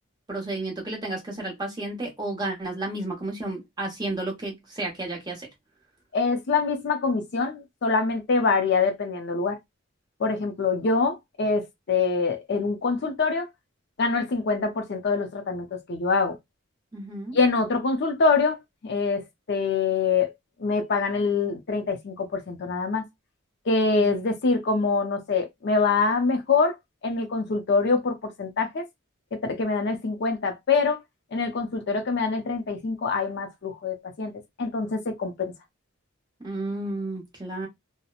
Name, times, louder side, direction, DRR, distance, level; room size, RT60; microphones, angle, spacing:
voice 1, 0.3-5.5 16.9-17.4 23.9-24.2 36.4-37.7, right 2 dB, 20° right, 0.9 m, -32 dB
voice 2, 6.1-9.6 10.2-13.5 14.0-16.4 17.3-18.6 18.8-20.3 20.6-23.0 23.7-26.7 27.0-28.8 29.4-31.0 31.3-34.3 34.6-35.5, left 4 dB, 55° left, 0.5 m, -25 dB
2.8 x 2.0 x 2.3 m
head